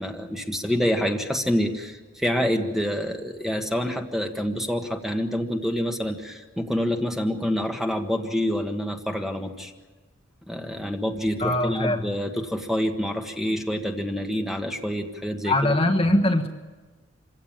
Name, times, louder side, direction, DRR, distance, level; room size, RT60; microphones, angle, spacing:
voice 1, 0.0-9.7 10.5-15.8, equal, ahead, 3 dB, 1.5 m, -27 dB
voice 2, 11.4-12.1 15.4-16.5, left 1 dB, 30° left, 3 dB, 1.4 m, -22 dB
26.5 x 16.5 x 8.9 m, 1.3 s
head